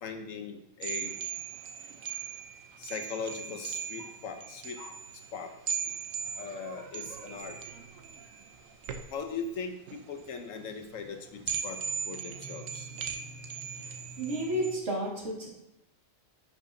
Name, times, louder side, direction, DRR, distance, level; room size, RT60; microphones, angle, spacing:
voice 1, 0.0-1.2 2.8-4.9 5.3-5.5 6.4-7.5 9.1-11.8 12.1-12.9, left 5 dB, 80° left, 6 dB, 1.2 m, -39 dB
sound 1, 0.8-14.8, right 7 dB, 80° right, 1.1 m, -39 dB
voice 2, 13.8-15.5, right 1 dB, 60° right, -3 dB, 2.3 m, -32 dB
10.0 x 6.0 x 2.6 m, 0.88 s
omnidirectional pair, 1.4 m